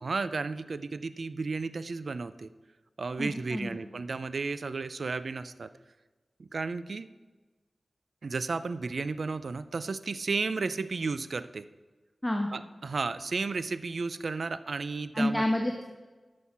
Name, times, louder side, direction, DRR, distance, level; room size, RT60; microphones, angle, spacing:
voice 1, 0.0-2.5 3.0-5.7 6.5-7.1 8.2-11.7 12.5-15.4, right 4 dB, 70° right, 13 dB, 0.5 m, -33 dB
voice 2, 3.2-3.8 12.2-12.5 15.1-15.8, left 1 dB, 10° left, 2 dB, 1.1 m, -29 dB
13.0 x 6.3 x 5.7 m, 1.2 s
wide cardioid pair, 105°, 0 cm